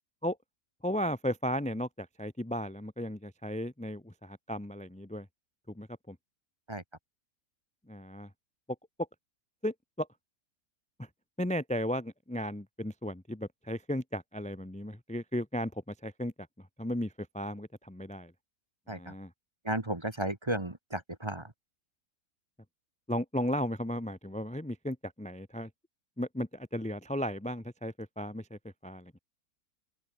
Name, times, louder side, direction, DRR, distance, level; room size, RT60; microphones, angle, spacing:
voice 1, 0.8-5.3 5.7-6.2 7.9-8.3 9.6-10.1 11.0-11.1 11.4-18.3 18.9-19.3 23.1-25.7 26.2-29.1, equal, 5° left, 1.2 m, -35 dB
voice 2, 19.7-21.4, right 1 dB, 20° right, 1.6 m, -34 dB
open air
omnidirectional pair, 1.6 m